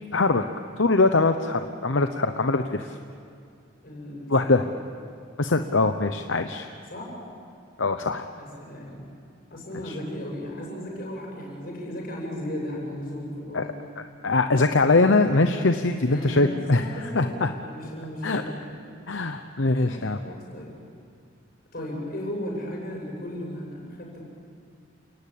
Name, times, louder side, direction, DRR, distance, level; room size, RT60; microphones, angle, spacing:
voice 1, 0.1-0.4 0.8-2.9 4.3-4.6 5.4-6.7 7.8-8.3 9.9-10.0 13.5-13.6 14.2-16.8 17.1-17.5 18.2-18.4 19.1-20.2, left 3 dB, 70° left, 7 dB, 0.9 m, -22 dB
voice 2, 3.8-4.7 6.9-7.2 8.3-9.0 9.5-13.7 15.8-18.8 19.8-20.8 21.7-24.2, equal, 50° left, -1 dB, 7.4 m, -36 dB
29.5 x 18.5 x 8.6 m, 2.3 s
head